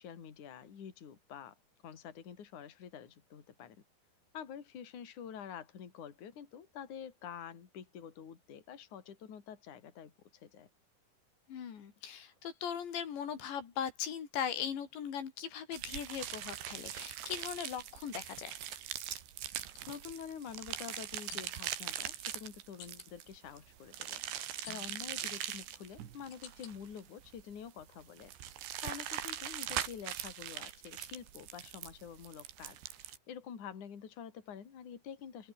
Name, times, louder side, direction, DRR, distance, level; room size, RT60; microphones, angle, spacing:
voice 1, 0.0-1.6 1.8-3.8 4.3-10.7 19.9-24.2 24.7-28.3 28.8-32.8 33.3-35.5, left 8 dB, 45° left, 4.3 m, -47 dB
voice 2, 11.5-18.6, left 8 dB, 85° left, 5.6 m, -39 dB
sound 1, 15.7-33.2, right 11 dB, 90° right, 4.6 m, -42 dB
sound 2, 19.8-19.9 21.3-21.7 22.8-23.1 24.6-25.2 25.8-26.8 27.3-28.0 28.4-30.4, left 9 dB, 65° left, 4.5 m, -56 dB
omnidirectional pair, 5.0 m